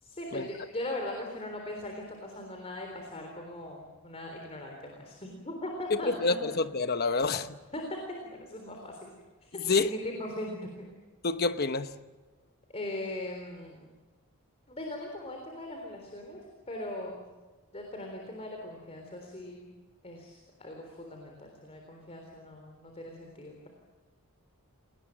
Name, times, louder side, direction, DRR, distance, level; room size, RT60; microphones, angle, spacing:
voice 1, 0.0-6.4 7.7-7.8 8.3-9.1 9.4-10.9 12.7-13.9 14.7-16.4 16.7-17.3 17.7-19.8 20.0-23.7, left 1 dB, 30° left, 3.7 m, -40 dB
voice 2, 5.9-7.6 9.6-9.9 11.2-11.9, left 3 dB, 45° left, 1.1 m, -28 dB
29.0 x 19.5 x 7.7 m
head